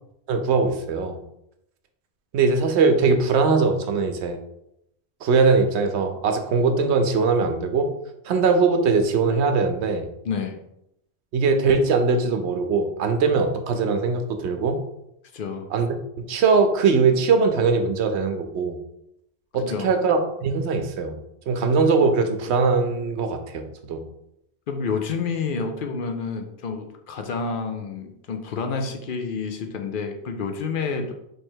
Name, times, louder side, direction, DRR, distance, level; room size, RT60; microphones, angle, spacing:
voice 1, 0.3-1.2 2.3-4.4 5.2-7.9 8.3-10.1 11.3-14.8 15.7-18.8 19.5-21.2 21.5-24.0, right 4 dB, 90° right, 6 dB, 0.9 m, -21 dB
voice 2, 10.2-10.6 15.3-15.7 19.6-19.9 24.7-31.1, left 5 dB, 60° left, 5 dB, 0.7 m, -29 dB
3.3 x 3.1 x 4.5 m, 0.80 s
omnidirectional pair, 1.1 m